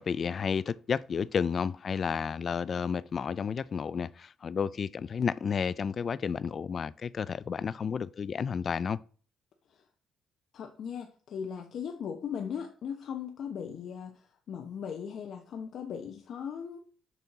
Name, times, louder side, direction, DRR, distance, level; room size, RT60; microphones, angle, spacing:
voice 1, 0.0-9.0, left 6 dB, 45° left, 0.4 m, -31 dB
voice 2, 10.5-16.8, left 7 dB, 65° left, 0.9 m, -38 dB
6.9 x 4.4 x 4.8 m
cardioid pair, 95°, 0 cm